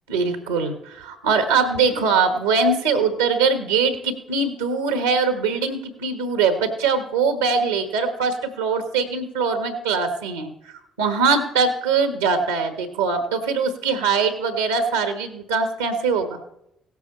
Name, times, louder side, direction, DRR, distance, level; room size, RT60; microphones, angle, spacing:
voice 1, 0.1-10.5 11.0-16.4, right 5 dB, 90° right, 8 dB, 1.2 m, -22 dB
16.5 x 8.2 x 4.1 m, 0.78 s
hypercardioid pair, 50°, 0 cm